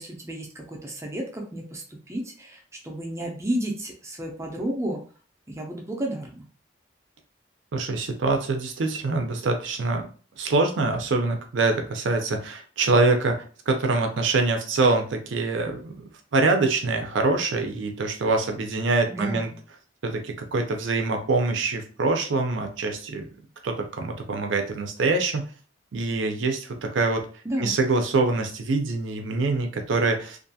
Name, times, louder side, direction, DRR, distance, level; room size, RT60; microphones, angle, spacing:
voice 1, 0.0-5.0 5.5-6.4 19.1-19.5 27.4-27.7, right 1 dB, 15° right, 1 dB, 0.5 m, -32 dB
voice 2, 7.7-10.1 10.4-19.5 20.0-23.3 23.6-25.5 25.9-27.3 27.6-30.4, right 3 dB, 75° right, 4 dB, 0.5 m, -24 dB
2.5 x 2.3 x 2.7 m, 0.40 s
head